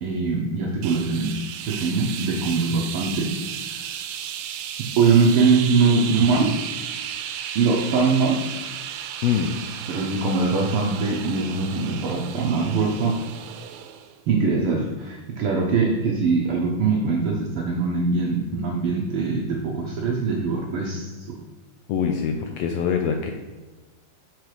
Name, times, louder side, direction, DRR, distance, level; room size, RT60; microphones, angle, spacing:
voice 1, 0.0-3.3 5.0-6.6 7.5-8.5 9.9-13.2 14.3-21.4, right 4 dB, 70° right, -1 dB, 1.3 m, -22 dB
sound 1, 0.8-14.2, right 9 dB, 90° right, 2.0 m, -34 dB
voice 2, 21.9-23.3, left 7 dB, 80° left, 4 dB, 1.5 m, -23 dB
6.2 x 5.1 x 4.8 m, 1.2 s
omnidirectional pair, 3.3 m